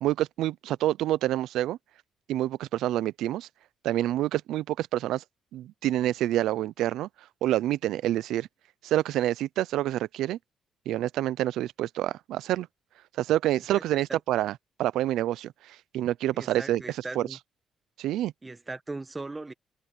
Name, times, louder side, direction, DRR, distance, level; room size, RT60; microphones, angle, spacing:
voice 1, 0.0-1.8 2.3-3.5 3.8-5.2 5.5-7.1 7.4-8.5 8.8-10.4 10.9-12.7 13.2-17.3 18.0-18.3, right 13 dB, 85° right, 0.5 m, -27 dB
voice 2, 16.3-17.4 18.4-19.5, right 3 dB, 20° right, 1.3 m, -38 dB
cardioid pair, 90°, 0 cm